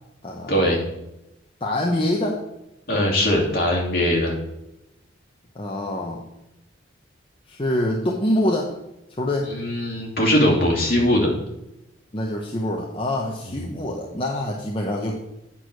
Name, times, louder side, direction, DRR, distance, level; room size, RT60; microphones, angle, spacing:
voice 1, 0.5-0.8 2.9-4.4 9.5-11.3 13.5-13.8, left 1 dB, 50° left, -1 dB, 2.7 m, -21 dB
voice 2, 1.6-2.4 5.5-6.2 7.5-8.8 9.2-9.5 12.1-15.2, left 1 dB, 25° left, -1 dB, 0.9 m, -25 dB
8.8 x 6.6 x 6.0 m, 0.90 s
head